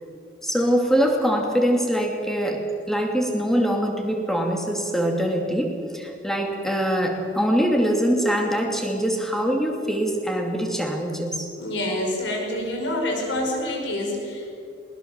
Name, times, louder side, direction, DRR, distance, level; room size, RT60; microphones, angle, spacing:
voice 1, 0.4-11.5, equal, ahead, 2 dB, 2.5 m, -23 dB
voice 2, 11.6-14.6, left 1 dB, 80° left, 1 dB, 5.6 m, -27 dB
20.5 x 20.5 x 7.4 m, 2.6 s
head